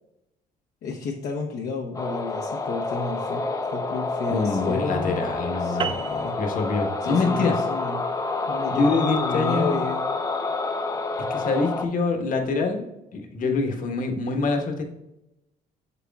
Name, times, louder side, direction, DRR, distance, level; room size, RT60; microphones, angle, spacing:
voice 1, 0.8-5.2 5.6-6.4 7.0-8.0 8.5-10.0, left 4 dB, 70° left, -1 dB, 0.9 m, -31 dB
sound 1, 1.9-11.8, left 3 dB, 20° left, 0.6 m, -28 dB
voice 2, 4.3-6.0 6.4-7.5 8.7-9.8 11.3-12.8 13.1-14.8, left 3 dB, 50° left, 3 dB, 1.3 m, -25 dB
sound 2, 5.8-10.5, right 6 dB, 30° right, 0.5 m, -36 dB
8.2 x 6.9 x 2.4 m, 0.91 s
cardioid pair, 110°, 17 cm